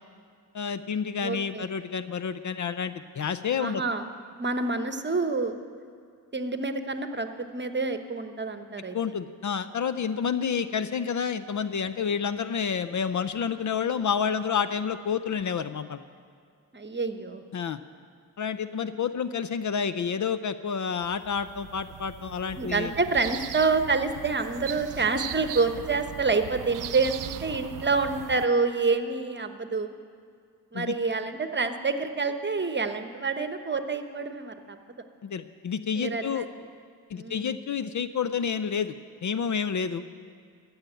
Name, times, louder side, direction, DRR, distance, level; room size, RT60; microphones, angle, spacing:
voice 1, 0.5-3.8 8.9-16.0 17.5-17.8 18.4-22.9 30.7-30.9 35.2-36.5 37.1-39.0 39.2-40.0, left 6 dB, 45° left, 12 dB, 0.6 m, -29 dB
voice 2, 1.2-1.7 3.6-4.1 4.4-5.6 6.3-9.0 16.7-17.4 22.6-29.9 30.7-34.8 36.0-36.5 37.1-37.5, right 4 dB, 25° right, 8 dB, 1.1 m, -27 dB
sound 1, 21.0-28.5, right 12 dB, 50° right, 0.5 m, -39 dB
14.5 x 7.2 x 9.0 m, 2.2 s
cardioid pair, 60°, 42 cm